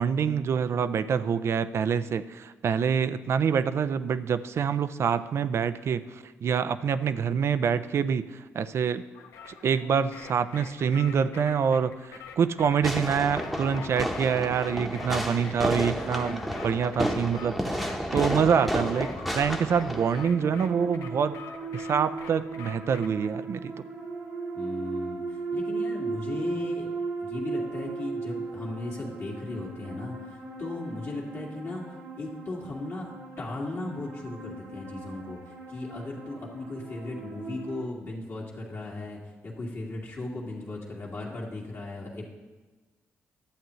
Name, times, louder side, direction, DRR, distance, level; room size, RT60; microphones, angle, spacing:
voice 1, 0.0-9.0 9.5-21.4 21.7-23.7, right 7 dB, 60° right, 13 dB, 0.4 m, -26 dB
sound 1, 9.1-23.3, left 6 dB, 85° left, 0.7 m, -45 dB
Fireworks, 12.8-20.2, equal, ahead, 0.9 m, -31 dB
voice 2, 15.9-16.6 24.5-26.9 27.2-31.8 32.2-33.1 33.4-42.3, left 2 dB, 55° left, -3 dB, 1.9 m, -37 dB
sound 2, 19.7-37.8, right 4 dB, 90° right, 2.5 m, -37 dB
11.5 x 7.6 x 3.1 m, 1.2 s
supercardioid pair, 60°, 5 cm